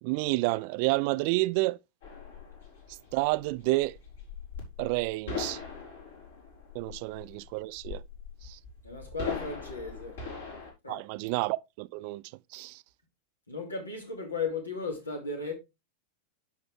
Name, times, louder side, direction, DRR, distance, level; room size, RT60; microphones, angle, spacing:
voice 1, 0.0-1.8 3.1-4.0 4.8-5.6 6.7-8.0 8.4-8.6 10.9-12.2 12.5-12.8, right 22 dB, 45° right, 0.4 m, -29 dB
sound 1, 2.0-10.7, left 5 dB, 65° left, 4.6 m, -41 dB
voice 2, 8.8-10.2 10.8-11.0 13.5-15.5, left 4 dB, 80° left, 2.9 m, -35 dB
10.0 x 5.8 x 3.5 m
figure-of-eight pair, 90°, 0 cm